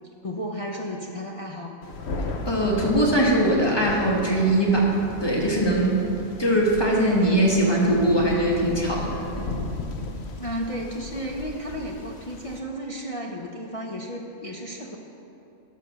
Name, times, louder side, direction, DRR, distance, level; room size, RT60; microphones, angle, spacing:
voice 1, 0.2-1.7 10.4-15.0, equal, 40° left, -2 dB, 0.5 m, -33 dB
Thunder, 1.8-12.6, left 3 dB, 55° left, 1.0 m, -35 dB
voice 2, 2.5-4.9 5.2-6.0 6.4-9.4, right 1 dB, 20° left, -3 dB, 1.6 m, -21 dB
11.5 x 5.1 x 6.4 m, 3.0 s
omnidirectional pair, 1.5 m